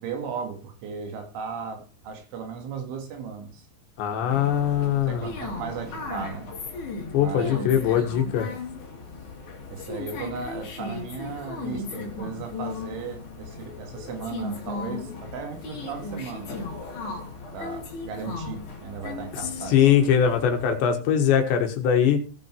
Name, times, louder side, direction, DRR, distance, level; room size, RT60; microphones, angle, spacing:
voice 1, 0.0-3.7 4.8-6.5 7.2-7.8 9.7-16.5 17.5-19.9, right 6 dB, 85° right, 4 dB, 4.7 m, -36 dB
voice 2, 4.0-5.3 7.1-8.5 19.7-22.2, left 9 dB, 75° left, 5 dB, 3.7 m, -21 dB
sound 1, 4.3-20.8, left 3 dB, 45° left, 3.6 m, -36 dB
17.5 x 6.1 x 4.6 m, 0.36 s
omnidirectional pair, 5.3 m